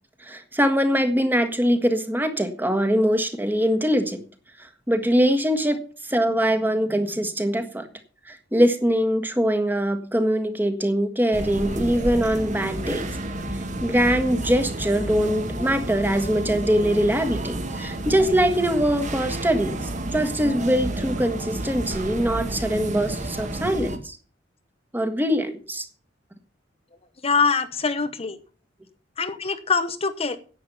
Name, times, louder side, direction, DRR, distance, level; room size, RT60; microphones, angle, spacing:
voice 1, 0.2-4.2 4.6-5.8 6.0-7.9 8.3-13.0 13.8-19.8 20.1-24.2 24.9-25.9, equal, 10° right, 7 dB, 1.6 m, -22 dB
sound 1, 11.3-24.0, right 1 dB, 40° right, 1.7 m, -31 dB
voice 2, 27.2-28.4 29.2-30.4, left 5 dB, 30° left, 10 dB, 0.8 m, -23 dB
10.5 x 8.7 x 7.0 m, 0.39 s
head